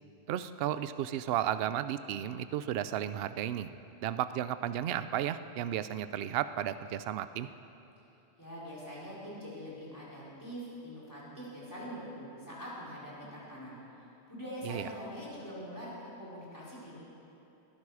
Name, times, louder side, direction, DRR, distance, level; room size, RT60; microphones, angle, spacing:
voice 1, 0.3-3.7 4.0-7.5 14.6-14.9, right 11 dB, 70° right, 13 dB, 0.7 m, -33 dB
voice 2, 8.4-13.8 14.3-15.9 16.2-17.0, equal, 15° left, -7 dB, 4.3 m, -43 dB
19.5 x 13.0 x 4.9 m, 3.0 s
omnidirectional pair, 1.1 m